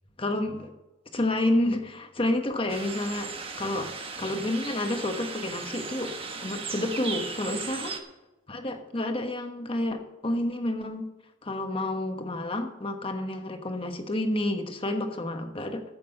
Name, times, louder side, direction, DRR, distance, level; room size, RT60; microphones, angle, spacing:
voice 1, 0.2-0.7 1.1-3.3 3.6-6.1 6.4-7.9 8.5-11.1 11.4-15.8, left 1 dB, 30° left, 6 dB, 1.2 m, -29 dB
sound 1, 2.7-8.0, right 4 dB, 30° right, 1.2 m, -37 dB
14.5 x 6.5 x 6.6 m, 1.1 s
head